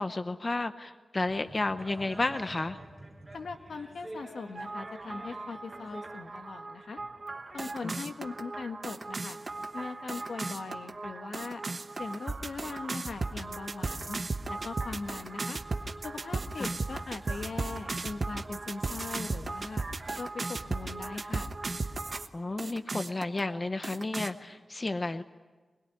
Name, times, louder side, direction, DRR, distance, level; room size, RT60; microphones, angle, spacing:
voice 1, 0.0-2.8 7.8-7.9 16.6-16.7 22.3-25.2, left 2 dB, 30° left, 9 dB, 0.8 m, -32 dB
sound 1, 1.2-6.1, right 1 dB, 5° right, 7.1 m, -47 dB
voice 2, 3.3-7.0 7.5-9.4 9.7-11.6 12.0-14.2 14.5-15.6 16.0-19.8 20.2-21.5, left 4 dB, 75° left, 6 dB, 1.6 m, -40 dB
sound 2, 4.6-22.3 22.6-23.4 23.8-24.3, right 3 dB, 40° right, 1.1 m, -36 dB
24.0 x 21.0 x 9.9 m, 1.3 s
wide cardioid pair, 140°, 0 cm